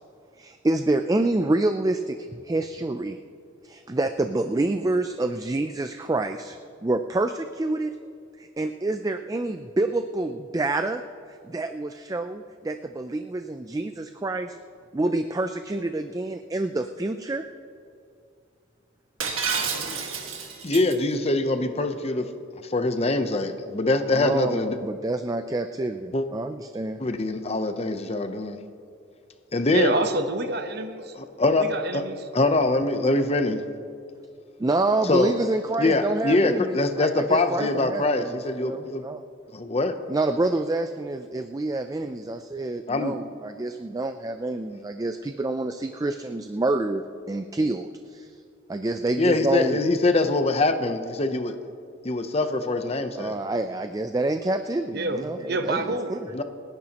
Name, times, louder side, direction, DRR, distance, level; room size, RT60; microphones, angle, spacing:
voice 1, 0.4-3.2 3.6-7.9 8.4-11.0 11.3-14.6 14.9-17.5 24.1-27.0 34.6-39.3 40.1-48.4 48.7-49.8 53.1-56.3, right 2 dB, 15° right, 8 dB, 0.3 m, -27 dB
Shatter, 19.2-20.9, right 5 dB, 90° right, 1.8 m, -29 dB
voice 2, 20.6-22.3 22.6-24.8 26.1-26.2 27.0-28.6 29.5-29.9 31.2-31.7 31.9-32.0 32.3-33.6 35.1-35.3 35.8-39.1 39.5-40.0 42.9-43.1 49.2-51.6 52.0-53.4 56.3-56.4, left 2 dB, 30° left, 8 dB, 0.7 m, -23 dB
voice 3, 29.7-31.1 31.5-32.2 54.9-56.1, right 2 dB, 50° right, 7 dB, 1.0 m, -27 dB
29.0 x 10.5 x 3.0 m, 2.4 s
head